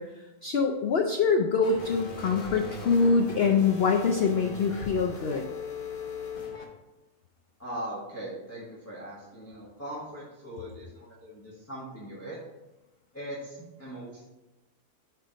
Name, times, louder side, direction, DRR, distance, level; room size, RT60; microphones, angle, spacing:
voice 1, 0.0-5.4, left 5 dB, 85° left, 3 dB, 0.5 m, -25 dB
sound 1, 1.6-6.6, left 3 dB, 40° left, 1.0 m, -40 dB
voice 2, 7.6-12.4 13.1-14.2, right 1 dB, 10° left, -7 dB, 1.0 m, -40 dB
4.6 x 4.5 x 5.0 m, 1.0 s
omnidirectional pair, 1.6 m